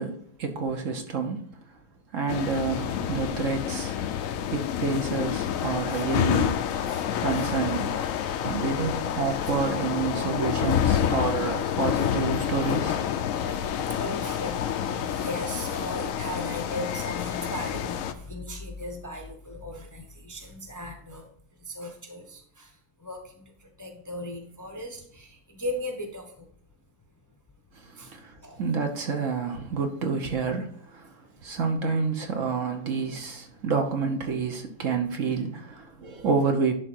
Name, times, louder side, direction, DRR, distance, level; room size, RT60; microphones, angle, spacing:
voice 1, 0.0-1.4 2.1-4.0 4.5-6.6 7.2-7.9 8.4-13.0 27.8-27.9 28.1-31.1 31.4-36.7, right 5 dB, 55° right, 1.2 m, -28 dB
sound 1, 2.3-18.1, left 9 dB, 70° left, 0.9 m, -28 dB
voice 2, 6.8-7.5 11.9-12.1 14.0-21.3 21.7-22.7 23.0-23.4 23.8-26.3 28.0-28.1 28.4-28.6, left 1 dB, 15° left, 0.8 m, -37 dB
11.0 x 3.7 x 4.4 m
omnidirectional pair, 1.7 m